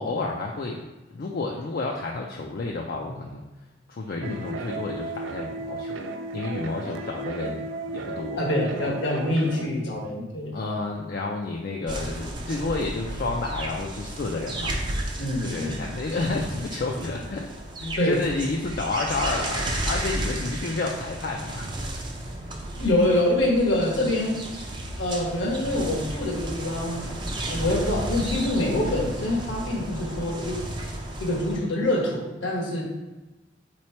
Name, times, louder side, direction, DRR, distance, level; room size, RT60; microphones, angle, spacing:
voice 1, 0.0-3.4 3.9-6.0 6.3-8.4 8.8-8.9 10.5-14.7 15.4-17.5 17.8-21.7, left 3 dB, 50° left, 0 dB, 0.4 m, -30 dB
sound 1, 4.2-9.7, right 2 dB, 80° right, 0.4 m, -34 dB
voice 2, 8.4-10.6 15.2-15.8 18.0-18.2 22.8-24.4 25.0-27.1 27.5-30.6 31.2-32.8, left 1 dB, 80° left, -2 dB, 1.2 m, -25 dB
sound 2, 11.9-31.6, right 1 dB, 25° right, 0.5 m, -33 dB
4.0 x 3.1 x 4.4 m, 1.1 s
head